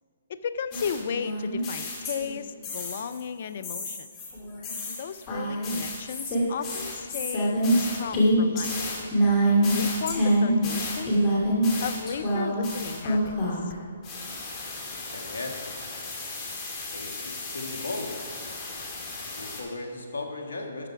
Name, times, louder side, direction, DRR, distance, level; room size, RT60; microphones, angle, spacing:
voice 1, 0.3-4.1 4.9-8.8 9.7-11.2 11.8-13.7, left 7 dB, 55° left, 13 dB, 0.5 m, -35 dB
sound 1, 0.7-3.2 3.6-13.7 14.0-19.6, equal, 30° left, 2.3 m, -27 dB
voice 2, 15.1-15.6 16.9-18.2 19.4-20.9, left 2 dB, 75° left, 3 dB, 1.5 m, -36 dB
12.0 x 6.8 x 4.7 m, 2.3 s
figure-of-eight pair, 135°, 0 cm